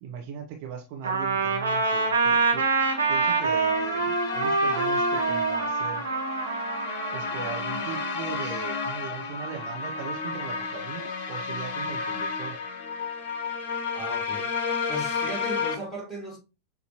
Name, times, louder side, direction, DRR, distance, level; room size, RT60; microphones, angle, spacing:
voice 1, 0.0-2.7 3.1-6.1 7.1-12.6, right 7 dB, 45° right, 0.8 m, -39 dB
Trumpet, 1.0-8.1, right 4 dB, 75° right, 0.9 m, -26 dB
sound 1, 2.4-15.8, left 5 dB, 50° left, 0.7 m, -32 dB
voice 2, 13.9-14.5 14.9-16.4, equal, 5° left, 2.5 m, -36 dB
6.7 x 2.7 x 2.9 m
figure-of-eight pair, 90°, 0 cm